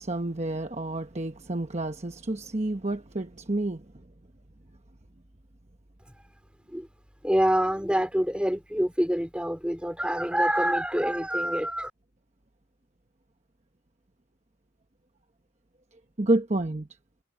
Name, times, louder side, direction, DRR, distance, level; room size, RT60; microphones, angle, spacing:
voice 1, 0.0-3.8 16.2-16.9, right 2 dB, 35° right, 1.1 m, -29 dB
voice 2, 7.2-11.9, equal, 5° right, 4.5 m, -26 dB
head